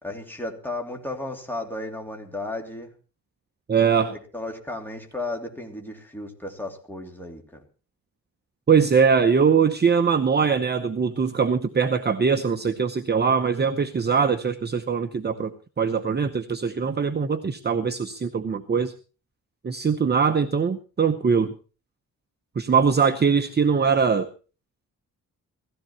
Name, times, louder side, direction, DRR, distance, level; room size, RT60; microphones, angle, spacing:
voice 1, 0.0-2.9 4.1-7.6, left 2 dB, 5° left, 2 dB, 3.1 m, -34 dB
voice 2, 3.7-4.1 8.7-15.5 15.8-18.9 19.6-21.5 22.6-24.3, right 6 dB, 30° right, 8 dB, 0.9 m, -22 dB
17.5 x 15.0 x 4.4 m, 0.36 s
wide cardioid pair, 170°, 34 cm